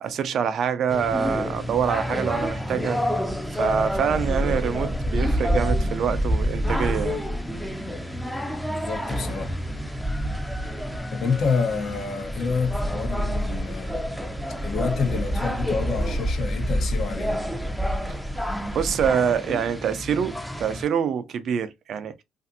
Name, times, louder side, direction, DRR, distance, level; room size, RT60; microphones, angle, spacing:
voice 1, 0.0-3.0 3.5-7.2 18.7-22.2, right 7 dB, 65° right, 0.4 m, -25 dB
sound 1, 0.9-20.8, equal, ahead, 0.5 m, -28 dB
voice 2, 8.9-9.5 11.1-14.0 14.6-17.5, left 5 dB, 60° left, 0.7 m, -28 dB
2.5 x 2.4 x 2.5 m
supercardioid pair, 70°, 0 cm